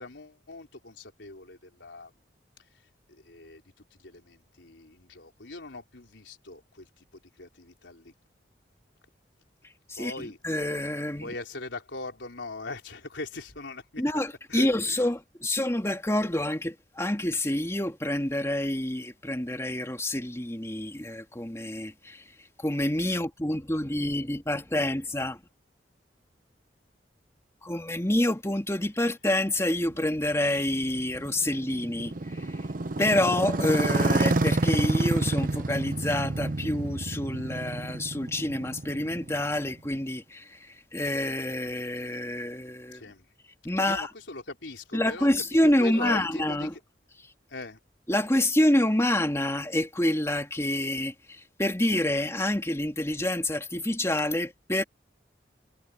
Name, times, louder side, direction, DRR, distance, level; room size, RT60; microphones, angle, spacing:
voice 1, 0.0-2.1 2.7-3.6 3.9-8.1 10.0-10.4 11.2-14.0 14.5-15.1 42.9-43.3 43.7-45.3 45.8-46.8 47.5-47.8, left 3 dB, 85° left, 3.8 m, -40 dB
voice 2, 10.4-11.3 14.0-22.2 22.6-25.4 27.6-32.7 33.0-43.0 43.6-44.1 44.9-46.7 48.1-54.8, left 1 dB, 15° left, 2.3 m, -27 dB
Motorcycle, 29.9-39.9, right 2 dB, 50° right, 0.9 m, -29 dB
head